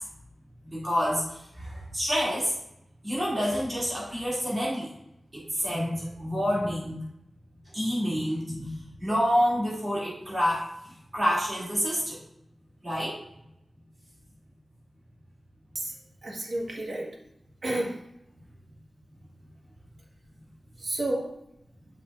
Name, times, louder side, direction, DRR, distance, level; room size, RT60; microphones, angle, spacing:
voice 1, 0.6-2.5 3.0-4.9 5.3-7.0 7.7-8.7 9.0-10.6 11.1-12.2 12.8-13.1, equal, 35° right, -7 dB, 2.4 m, -28 dB
voice 2, 15.7-17.2 17.6-18.0 20.8-21.3, right 1 dB, 55° right, -1 dB, 1.3 m, -31 dB
6.9 x 6.0 x 2.4 m, 0.82 s
wide cardioid pair, 115°, 0 cm